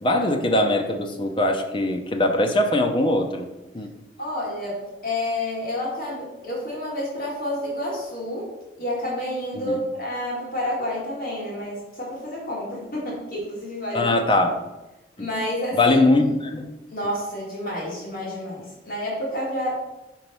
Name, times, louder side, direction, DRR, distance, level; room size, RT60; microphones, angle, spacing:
voice 1, 0.0-3.5 3.7-3.9 9.6-9.8 13.9-14.6 15.2-15.3 15.7-16.7, left 2 dB, 30° left, 4 dB, 0.7 m, -21 dB
voice 2, 4.2-8.5 8.8-14.2 15.2-16.0 16.9-19.8, left 1 dB, 50° left, -5 dB, 2.1 m, -29 dB
5.1 x 4.6 x 5.4 m, 1.0 s
head